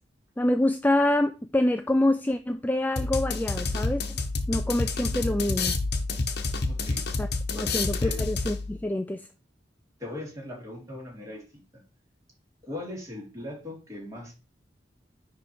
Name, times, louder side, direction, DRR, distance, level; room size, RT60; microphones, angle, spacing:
voice 1, 0.4-4.0 4.5-5.8 7.2-9.3, left 1 dB, 10° left, 0.4 m, -26 dB
sound 1, 3.0-8.8, left 3 dB, 65° left, 1.0 m, -29 dB
voice 2, 6.6-7.0 7.5-7.7 8.0-8.2 10.0-11.4 12.7-14.3, left 1 dB, 20° right, 3.2 m, -39 dB
9.9 x 3.4 x 4.6 m
head